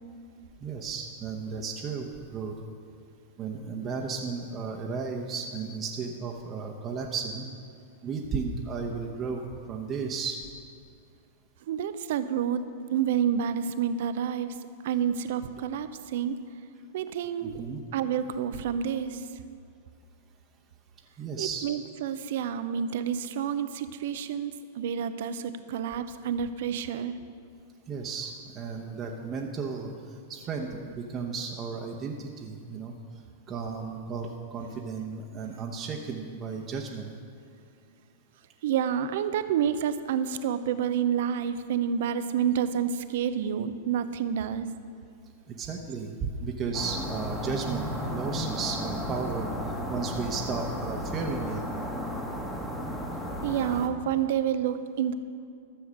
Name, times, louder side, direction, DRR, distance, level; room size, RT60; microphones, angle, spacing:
voice 1, 0.6-2.6 3.4-7.5 8.0-10.4 17.4-17.8 21.2-21.7 27.9-32.9 33.5-37.1 45.5-49.5 49.9-51.6, right 5 dB, 30° right, 0 dB, 1.1 m, -34 dB
voice 2, 11.7-12.6 12.9-14.6 14.8-16.4 16.9-17.6 17.9-19.2 21.4-27.2 38.6-44.7 53.4-55.1, right 8 dB, 65° right, 11 dB, 0.7 m, -29 dB
sound 1, 46.7-53.9, equal, 10° left, 1.7 m, -34 dB
13.0 x 7.1 x 6.5 m, 2.4 s
hypercardioid pair, 105°, 0 cm